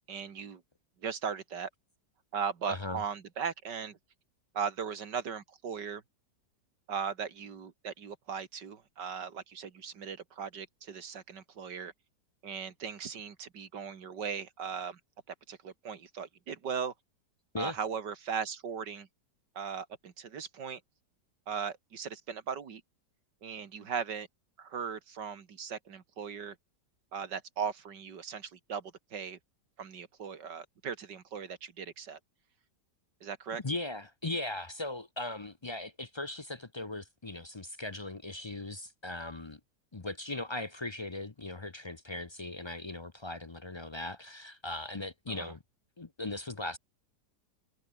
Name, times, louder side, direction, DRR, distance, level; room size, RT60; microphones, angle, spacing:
voice 1, 0.1-0.6 1.0-1.7 2.3-4.0 4.5-6.0 6.9-11.9 12.4-15.0 15.5-16.9 17.6-19.1 19.6-20.8 21.5-22.8 23.4-24.3 24.6-26.6 27.1-29.4 29.8-32.2 33.2-33.6 45.3-45.5, right 6 dB, 80° right, 2.5 m, -38 dB
voice 2, 2.7-3.0 17.5-17.8 33.6-39.6 39.9-45.6 46.0-46.8, left 2 dB, 30° left, 0.5 m, -38 dB
omnidirectional pair, 1.9 m